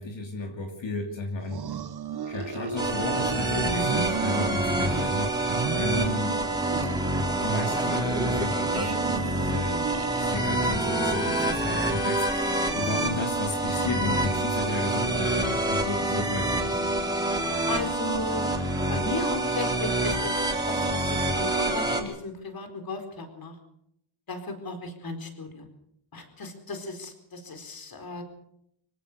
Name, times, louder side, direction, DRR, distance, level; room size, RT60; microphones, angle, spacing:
voice 1, 0.0-1.6 2.3-6.4 7.4-9.9 10.2-16.9, left 2 dB, 65° left, 2 dB, 3.1 m, -33 dB
sound 1, 1.4-3.5 3.8-5.2 5.5-7.2 7.5-10.7, right 7 dB, 50° right, 1.3 m, -35 dB
sound 2, 2.8-22.0, right 2 dB, 10° right, 4.0 m, -27 dB
voice 2, 3.5-3.9 17.7-18.5 18.9-20.4 20.7-23.5 24.3-25.6 26.1-28.2, left 2 dB, 45° left, 7 dB, 4.3 m, -35 dB
25.5 x 16.5 x 6.7 m, 0.75 s
wide cardioid pair, 170°, 49 cm